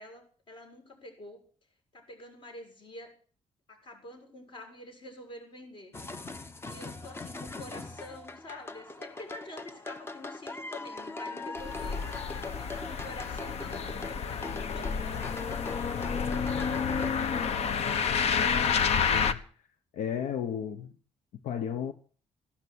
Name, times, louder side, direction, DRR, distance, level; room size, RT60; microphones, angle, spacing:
voice 1, 0.0-1.4 1.9-3.1 3.7-5.9 6.6-16.6, left 1 dB, 45° left, 6.7 m, -48 dB
sound 1, 5.9-17.1, left 3 dB, 20° left, 1.0 m, -41 dB
sound 2, 11.6-19.3, left 6 dB, 60° left, 1.3 m, -30 dB
voice 2, 18.5-19.4 19.9-20.9 21.4-21.9, left 8 dB, 90° left, 1.1 m, -34 dB
15.5 x 12.5 x 6.3 m
cardioid pair, 140°, 12 cm